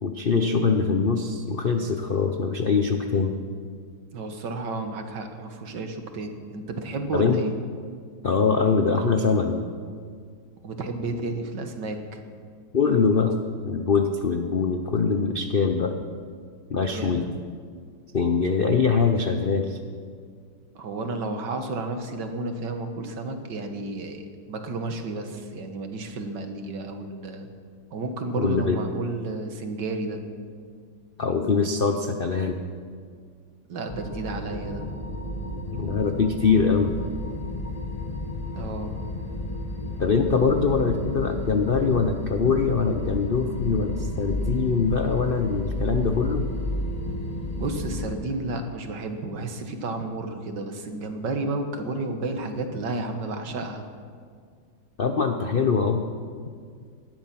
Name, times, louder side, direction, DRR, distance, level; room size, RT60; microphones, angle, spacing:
voice 1, 0.0-3.3 7.1-7.4 8.2-9.7 12.7-13.3 13.6-15.9 16.7-17.2 18.1-19.8 28.4-28.8 31.2-32.6 35.7-36.9 40.0-46.5 55.0-56.0, left 5 dB, 60° left, 5 dB, 0.5 m, -23 dB
voice 2, 4.1-7.5 10.6-12.2 16.9-17.3 20.8-27.5 27.9-30.2 33.7-34.8 38.5-38.9 47.6-53.8, right 2 dB, 65° right, 6 dB, 1.9 m, -32 dB
sound 1, 33.9-48.2, left 1 dB, 25° left, 0.9 m, -32 dB
18.5 x 12.0 x 6.0 m, 2.1 s
omnidirectional pair, 2.2 m